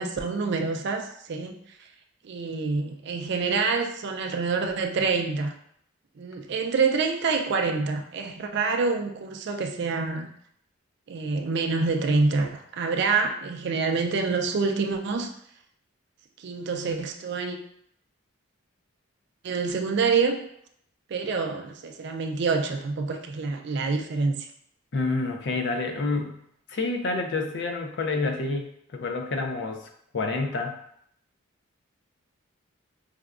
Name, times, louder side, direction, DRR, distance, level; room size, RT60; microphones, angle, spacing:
voice 1, 0.0-1.6 2.2-5.5 6.2-10.3 11.1-15.3 16.4-17.6 19.4-20.4 21.1-24.5, right 4 dB, 55° right, 3 dB, 0.4 m, -26 dB
voice 2, 24.9-26.4 26.7-30.8, left 3 dB, 55° left, 3 dB, 0.5 m, -28 dB
4.7 x 2.2 x 2.3 m, 0.68 s
head